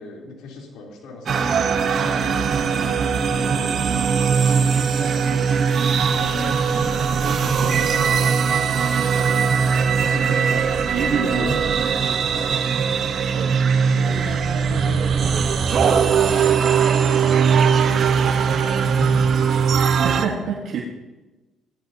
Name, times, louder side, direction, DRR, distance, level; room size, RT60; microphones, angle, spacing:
voice 1, 0.0-2.9 3.4-12.6 13.8-19.3, left 3 dB, 85° left, -2 dB, 3.6 m, -38 dB
sound 1, 1.3-20.3, right 6 dB, 55° right, 1.1 m, -20 dB
voice 2, 10.9-11.5 13.3-13.6 20.0-20.8, right 6 dB, 70° right, -1 dB, 1.5 m, -25 dB
17.0 x 13.0 x 2.9 m, 1.1 s
cardioid pair, 90°, 0 cm